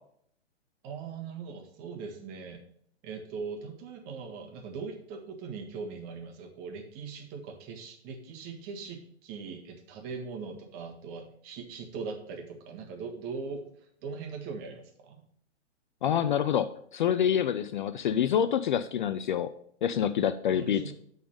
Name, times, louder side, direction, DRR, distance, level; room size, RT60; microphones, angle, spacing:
voice 1, 0.8-2.6 3.0-15.2 20.5-20.9, right 5 dB, 30° right, 3 dB, 1.6 m, -40 dB
voice 2, 16.0-19.5 19.8-20.9, left 9 dB, 45° left, 12 dB, 0.4 m, -27 dB
8.4 x 4.1 x 6.7 m, 0.64 s
figure-of-eight pair, 120°, 34 cm